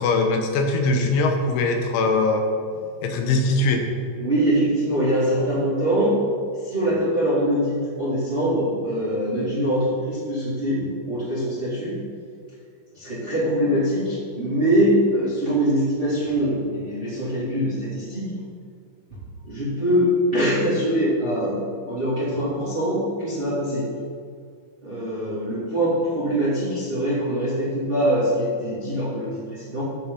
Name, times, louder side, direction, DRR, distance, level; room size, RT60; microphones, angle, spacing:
voice 1, 0.0-2.4 3.0-3.8, left 3 dB, 80° left, 3 dB, 3.4 m, -21 dB
voice 2, 4.2-6.2 6.6-12.0 12.9-18.4 19.4-23.9 24.8-29.8, equal, 15° right, -9 dB, 2.2 m, -23 dB
15.0 x 5.3 x 5.5 m, 2.2 s
omnidirectional pair, 5.3 m